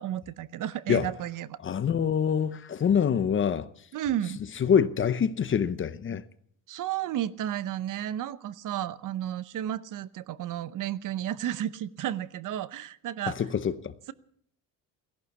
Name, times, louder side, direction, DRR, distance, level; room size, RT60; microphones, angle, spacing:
voice 1, 0.0-1.6 3.9-4.4 6.7-13.4, right 11 dB, 55° right, 0.8 m, -32 dB
voice 2, 1.6-3.6 4.6-6.2 13.3-13.9, left 7 dB, 35° left, 0.7 m, -25 dB
17.0 x 11.5 x 7.1 m
cardioid pair, 130°, 37 cm